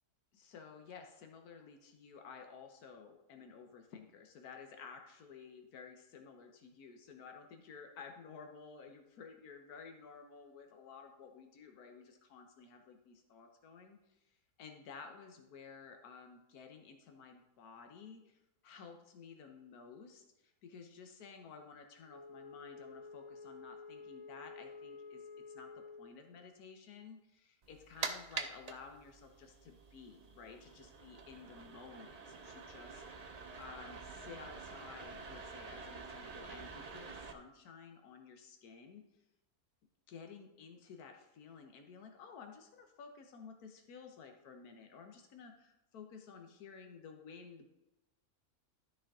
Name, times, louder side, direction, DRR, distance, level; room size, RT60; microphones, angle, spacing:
voice 1, 0.3-14.1 14.6-25.2 25.5-33.0 33.6-39.0 40.1-47.7, left 5 dB, 85° left, 4 dB, 1.4 m, -53 dB
Wind instrument woodwind instrument, 22.0-26.2, left 4 dB, 45° left, 0.6 m, -51 dB
sound 1, 27.6-37.3, right 4 dB, 45° right, 0.5 m, -47 dB
12.5 x 5.0 x 3.7 m, 0.90 s
omnidirectional pair, 1.6 m